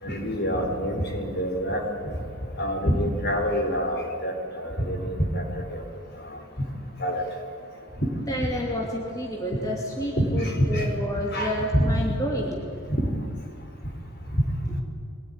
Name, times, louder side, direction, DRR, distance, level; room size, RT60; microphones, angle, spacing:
voice 1, 0.0-1.8 2.6-5.8 7.0-7.2 8.4-8.5 10.2-10.9 11.3-11.9 13.0-13.1, equal, 50° left, 2 dB, 3.9 m, -26 dB
voice 2, 8.3-12.6, equal, 15° left, -2 dB, 2.6 m, -29 dB
23.0 x 18.0 x 9.8 m, 2.3 s
head